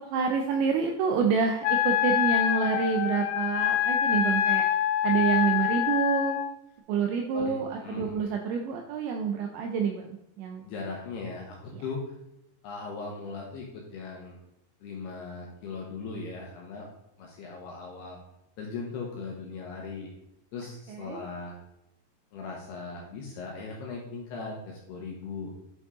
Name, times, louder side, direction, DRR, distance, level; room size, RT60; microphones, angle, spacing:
voice 1, 0.1-4.6 5.0-6.4 6.9-10.6 11.7-11.8 20.9-21.2, right 6 dB, 85° right, 3 dB, 2.6 m, -28 dB
Wind instrument woodwind instrument, 1.6-6.5, left 11 dB, 90° left, 3.3 m, -25 dB
voice 2, 7.3-8.2 10.6-12.0 12.6-14.3 14.8-16.9 17.2-18.2 18.6-20.1 20.5-21.6 22.3-25.5, left 4 dB, 70° left, -1 dB, 2.6 m, -38 dB
9.5 x 5.3 x 3.6 m, 0.86 s
omnidirectional pair, 5.9 m